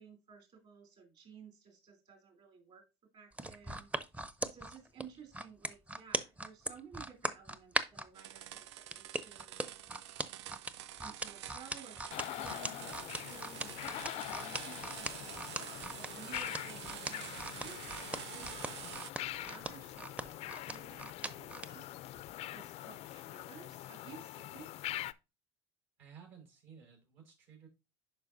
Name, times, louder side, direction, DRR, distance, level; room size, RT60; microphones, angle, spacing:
voice 1, 0.0-2.8 3.1-3.9 4.4-9.6 11.0-13.7 14.1-21.8 22.5-24.7, right 6 dB, 45° right, 3 dB, 3.0 m, -55 dB
sound 1, 3.3-8.1 8.9-21.7 22.2-22.3, right 2 dB, 10° right, 0.6 m, -39 dB
sound 2, 8.1-19.1, right 12 dB, 90° right, 0.4 m, -48 dB
sound 3, 12.1-25.1, left 15 dB, 50° left, 0.4 m, -44 dB
voice 2, 26.0-27.7, right 7 dB, 70° right, 2 dB, 4.4 m, -56 dB
11.0 x 4.4 x 2.6 m, 0.27 s
hypercardioid pair, 85°, 14 cm